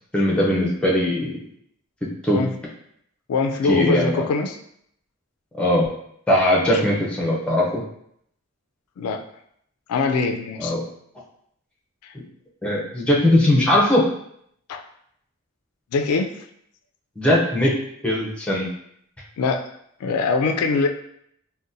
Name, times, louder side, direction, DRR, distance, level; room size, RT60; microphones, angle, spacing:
voice 1, 0.1-1.4 2.2-2.4 3.6-4.2 5.6-5.9 6.3-7.8 10.6-10.8 12.6-14.1 17.2-17.8 18.0-18.7, left 1 dB, 5° left, -4 dB, 0.6 m, -19 dB
voice 2, 3.3-4.6 6.7-6.8 9.0-9.2 9.9-10.8 12.0-12.1 14.7-14.8 15.9-16.3 19.4-19.7 20.0-20.9, left 4 dB, 85° left, 7 dB, 0.3 m, -23 dB
3.9 x 2.1 x 2.6 m, 0.71 s
head